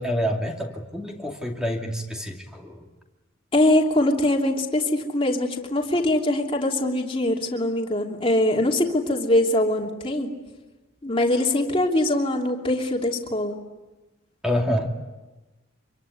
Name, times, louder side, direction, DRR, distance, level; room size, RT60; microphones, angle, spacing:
voice 1, 0.0-2.9 14.4-14.9, equal, 5° right, 1 dB, 2.5 m, -27 dB
voice 2, 3.5-10.3 11.0-13.6, left 1 dB, 25° left, 0 dB, 3.0 m, -22 dB
26.0 x 24.0 x 9.6 m, 1.1 s
head